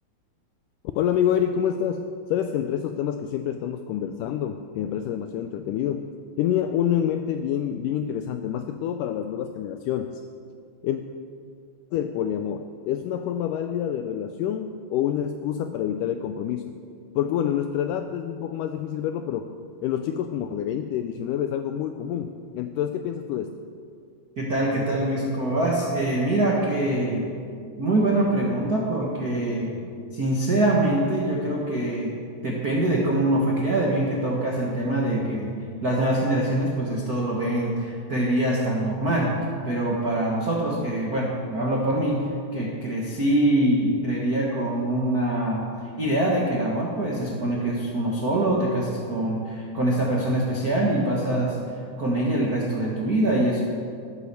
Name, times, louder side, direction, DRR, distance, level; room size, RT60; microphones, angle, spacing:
voice 1, 1.0-10.2 10.8-11.0 11.9-16.7 17.2-23.6, left 9 dB, 85° left, 7 dB, 1.9 m, -27 dB
voice 2, 24.4-27.3 27.8-29.8 30.1-32.1 32.4-35.5 35.8-39.3 39.6-45.7 46.0-51.6 52.0-53.6, right 1 dB, 65° right, -3 dB, 0.9 m, -24 dB
14.0 x 8.2 x 6.9 m, 2.3 s
omnidirectional pair, 4.2 m